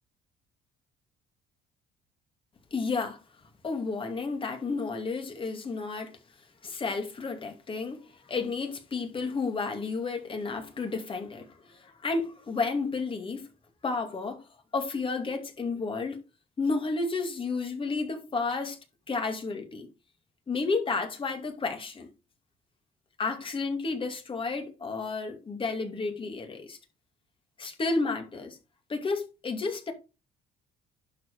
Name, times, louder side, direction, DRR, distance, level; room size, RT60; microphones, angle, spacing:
voice 1, 2.7-3.2 3.6-6.1 6.6-13.5 13.8-14.5 14.7-16.2 16.6-18.8 19.1-19.9 20.5-22.1 23.2-26.8 27.6-28.6 28.9-29.9, left 4 dB, 30° left, 2.6 m, -31 dB
11.5 x 4.8 x 4.8 m
cardioid pair, 110°, 17 cm